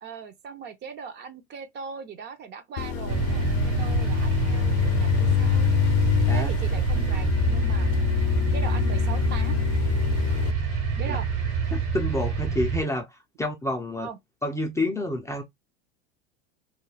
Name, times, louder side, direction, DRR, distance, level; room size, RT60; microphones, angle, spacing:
voice 1, 0.0-5.7 6.3-7.9 8.5-9.6 11.0-11.3 14.0-14.2, right 5 dB, 35° right, 0.7 m, -39 dB
sound 1, 2.8-10.5, left 12 dB, 55° left, 0.6 m, -25 dB
sound 2, 3.1-12.8, right 6 dB, 65° right, 1.3 m, -27 dB
voice 2, 11.7-14.1 14.4-15.4, left 1 dB, 10° left, 0.5 m, -29 dB
2.4 x 2.2 x 3.2 m
hypercardioid pair, 100°, 32 cm